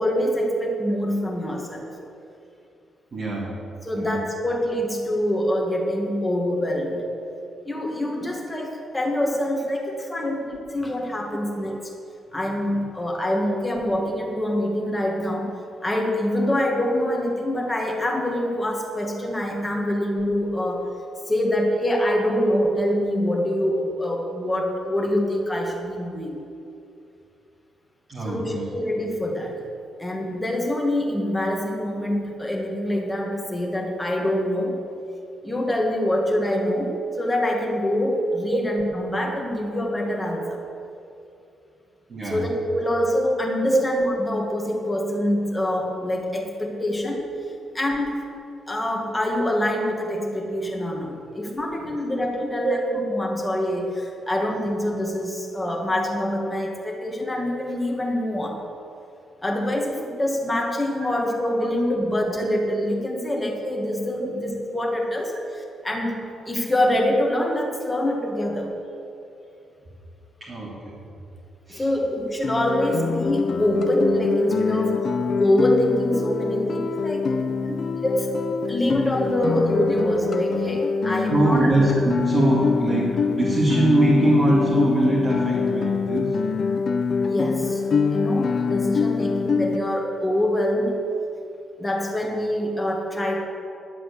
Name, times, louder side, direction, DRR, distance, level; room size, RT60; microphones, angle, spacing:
voice 1, 0.0-1.9 3.8-7.0 7.7-10.4 10.7-11.8 12.3-15.5 15.8-20.8 21.3-26.4 28.2-29.5 30.0-34.8 35.4-40.6 42.2-47.2 47.7-48.3 48.7-58.6 59.4-66.2 66.5-68.7 71.7-75.0 75.4-77.3 78.0-78.3 78.7-81.6 87.2-87.8 88.1-90.9 91.8-93.5, left 1 dB, 10° left, 0 dB, 1.8 m, -25 dB
voice 2, 3.1-3.6 3.9-4.1 10.2-10.3 28.1-28.7 38.5-38.6 42.1-42.5 43.7-43.8 52.4-53.0 61.6-61.7 64.2-64.3 70.4-71.0 71.7-71.8 74.7-74.8 76.5-76.6 77.6-77.8 81.3-86.3 90.8-90.9, right 1 dB, 35° right, -5 dB, 2.1 m, -23 dB
Guitar, 72.4-89.8, left 5 dB, 45° left, 0.5 m, -24 dB
11.5 x 7.8 x 8.2 m, 2.7 s
cardioid pair, 150°, 0 cm